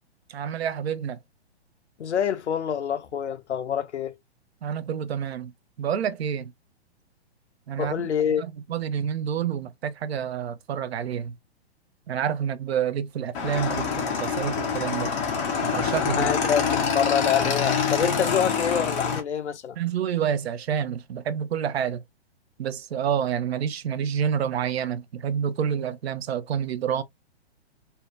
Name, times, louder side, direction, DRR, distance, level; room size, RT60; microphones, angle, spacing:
voice 1, 0.3-1.2 4.6-5.5 5.8-6.5 7.7-7.9 8.7-11.4 12.1-15.1 15.6-16.3 19.8-22.0 22.6-27.0, right 8 dB, 70° right, 0.5 m, -28 dB
voice 2, 2.0-4.1 7.8-8.4 16.0-19.8, left 8 dB, 85° left, 0.5 m, -26 dB
Motorcycle / Engine, 13.3-19.2, left 6 dB, 15° left, 0.3 m, -26 dB
2.6 x 2.2 x 2.3 m
figure-of-eight pair, 120°, 33 cm